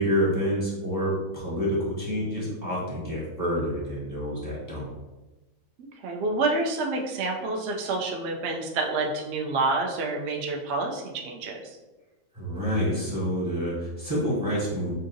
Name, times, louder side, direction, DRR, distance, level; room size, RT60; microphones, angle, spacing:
voice 1, 0.0-4.9 12.3-14.9, equal, 20° right, -7 dB, 0.7 m, -28 dB
voice 2, 5.8-11.8, right 3 dB, 65° right, 1 dB, 0.7 m, -28 dB
5.5 x 2.5 x 2.6 m, 1.1 s
omnidirectional pair, 1.5 m